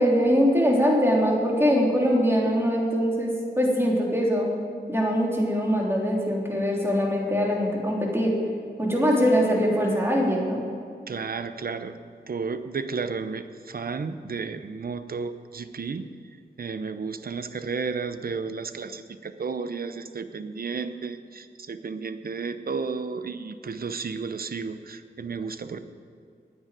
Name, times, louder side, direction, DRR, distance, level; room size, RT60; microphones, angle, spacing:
voice 1, 0.0-4.5 4.9-8.3 8.8-10.6, equal, 15° right, -2 dB, 3.1 m, -22 dB
voice 2, 11.1-12.0 12.3-16.1 16.6-25.8, right 5 dB, 55° right, 11 dB, 0.7 m, -33 dB
9.8 x 9.4 x 9.0 m, 2.2 s
wide cardioid pair, 75°, 18 cm